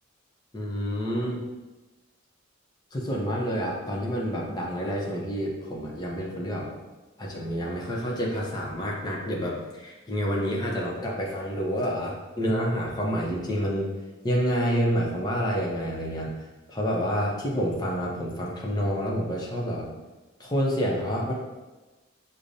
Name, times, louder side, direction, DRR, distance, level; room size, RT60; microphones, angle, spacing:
voice 1, 0.5-1.4 2.9-6.7 7.2-13.9 14.2-16.3 16.7-19.9 20.4-21.3, equal, 20° left, -3 dB, 0.7 m, -28 dB
6.3 x 2.1 x 2.6 m, 1.2 s
head